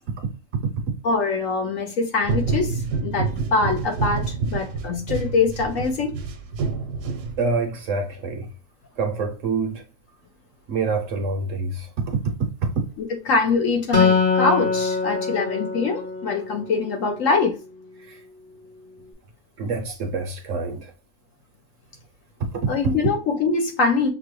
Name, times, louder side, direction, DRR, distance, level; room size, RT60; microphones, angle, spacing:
voice 1, 1.0-6.1 13.0-17.5 22.7-24.1, left 4 dB, 60° left, 1.0 m, -23 dB
sound 1, 2.2-7.8, right 4 dB, 80° right, 1.2 m, -28 dB
voice 2, 7.4-8.5 9.0-9.8 10.7-12.2 18.1-18.2 19.6-20.9, right 4 dB, 60° right, 1.0 m, -26 dB
Acoustic guitar, 13.9-17.4, left 5 dB, 40° left, 1.1 m, -23 dB
6.0 x 2.2 x 3.1 m
omnidirectional pair, 1.8 m